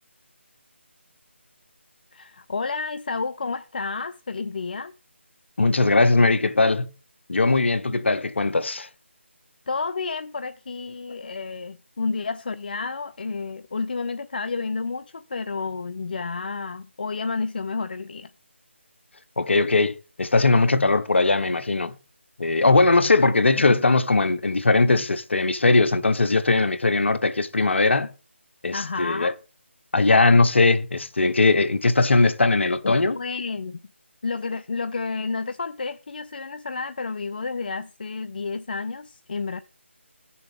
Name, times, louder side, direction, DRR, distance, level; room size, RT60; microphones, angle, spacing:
voice 1, 2.1-4.9 9.7-18.3 28.7-29.4 32.8-33.8 34.2-39.6, left 4 dB, 45° left, 0.4 m, -30 dB
voice 2, 5.6-6.9 7.3-8.9 19.4-22.0 22.4-28.1 28.6-29.3 29.9-33.2, left 3 dB, 65° left, 1.0 m, -20 dB
16.0 x 6.9 x 3.6 m
figure-of-eight pair, 160°, 7 cm